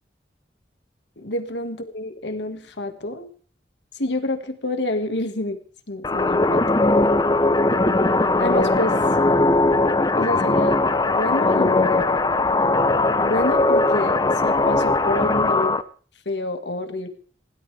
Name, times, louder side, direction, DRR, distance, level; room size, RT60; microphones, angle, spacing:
voice 1, 1.2-3.3 4.0-5.6 5.9-6.6 8.4-9.0 10.2-10.8 11.1-12.2 13.2-15.8 16.3-17.1, left 1 dB, 90° left, 8 dB, 2.0 m, -27 dB
sound 1, 6.0-15.8, left 2 dB, 25° left, 0.7 m, -19 dB
21.0 x 17.0 x 3.4 m, 0.42 s
head